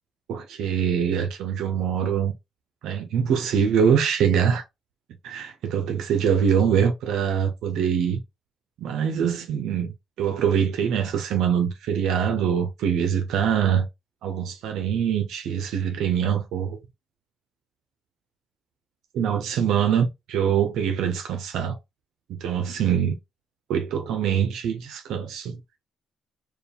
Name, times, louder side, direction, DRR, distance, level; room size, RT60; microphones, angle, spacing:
voice 1, 0.3-2.3 2.8-4.6 5.2-8.2 8.8-9.9 10.2-13.9 14.2-16.8 19.1-21.8 22.3-23.2 23.7-25.6, right 8 dB, 85° right, 0.6 m, -24 dB
4.6 x 2.3 x 3.4 m
cardioid pair, 90°, 0 cm